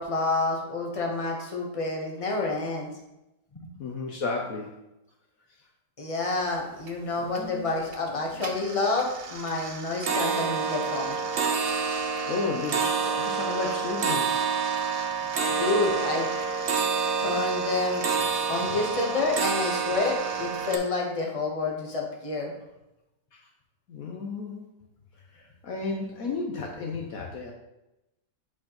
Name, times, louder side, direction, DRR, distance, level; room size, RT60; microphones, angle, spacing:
voice 1, 0.0-2.9 3.6-3.7 6.0-11.2 15.5-16.3 17.2-18.0 18.5-22.5, left 3 dB, 25° left, -1 dB, 0.9 m, -29 dB
voice 2, 3.8-4.8 7.2-7.7 12.2-14.5 18.7-18.8 23.3-23.4 23.9-24.6 25.3-27.5, left 4 dB, 60° left, 0 dB, 1.1 m, -33 dB
sound 1, 6.4-6.5 6.8-7.4 7.8-8.1 8.4-20.8, right 5 dB, 65° right, 0.5 m, -28 dB
8.4 x 4.3 x 3.0 m, 0.92 s
omnidirectional pair, 1.8 m